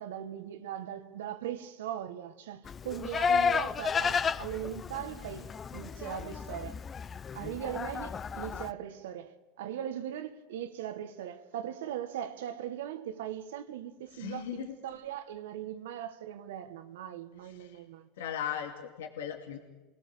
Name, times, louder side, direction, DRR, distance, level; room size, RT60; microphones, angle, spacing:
voice 1, 0.0-6.8 7.3-18.1, right 10 dB, 80° right, 1.7 m, -39 dB
Livestock farm animals working animals, 2.6-8.7, left 6 dB, 30° left, 0.7 m, -32 dB
voice 2, 14.1-14.8 17.4-17.8 18.2-19.6, left 9 dB, 85° left, 2.6 m, -38 dB
29.0 x 19.0 x 6.9 m
hypercardioid pair, 95°, 0 cm